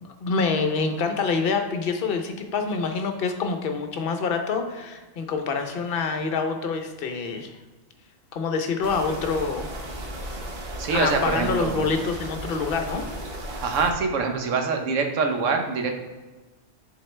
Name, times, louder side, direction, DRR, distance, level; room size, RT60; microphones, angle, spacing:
voice 1, 0.0-7.5 8.3-9.7 10.9-13.1, left 4 dB, 55° left, 5 dB, 0.8 m, -26 dB
sound 1, 8.8-13.9, right 1 dB, 50° right, 1.1 m, -35 dB
voice 2, 10.8-11.8 13.6-15.9, right 4 dB, 80° right, 4 dB, 1.1 m, -24 dB
7.4 x 4.1 x 3.2 m, 1.3 s
omnidirectional pair, 1.3 m